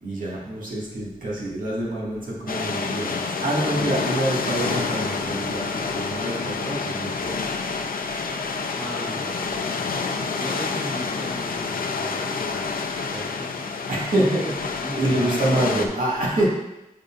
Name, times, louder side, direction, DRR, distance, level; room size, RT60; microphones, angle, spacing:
voice 1, 0.0-7.6 8.4-8.8 13.0-13.2 13.9-14.6 15.0-16.5, right 1 dB, 65° right, -5 dB, 2.0 m, -26 dB
sound 1, 2.5-15.9, left 4 dB, 70° left, 0.6 m, -28 dB
voice 2, 8.8-12.8 13.1-15.4, equal, 5° right, -4 dB, 0.7 m, -37 dB
6.8 x 6.5 x 2.5 m, 0.92 s
wide cardioid pair, 75°, 15 cm